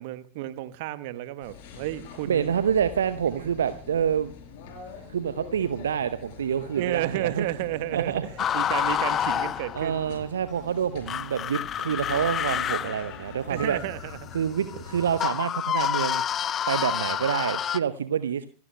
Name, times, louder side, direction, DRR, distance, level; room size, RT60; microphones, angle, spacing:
voice 1, 0.0-2.5 3.4-3.5 6.8-10.0 13.5-14.3, right 15 dB, 50° right, 1.0 m, -32 dB
sound 1, 1.4-15.1, left 5 dB, 50° left, 4.8 m, -45 dB
voice 2, 2.3-4.3 5.1-7.5 7.9-8.2 9.7-13.8 14.3-16.2 16.7-18.5, right 8 dB, 65° right, 0.7 m, -27 dB
sound 2, 8.4-10.1 11.1-17.8, left 9 dB, 25° left, 0.6 m, -28 dB
27.0 x 17.0 x 2.2 m
figure-of-eight pair, 90°, 0 cm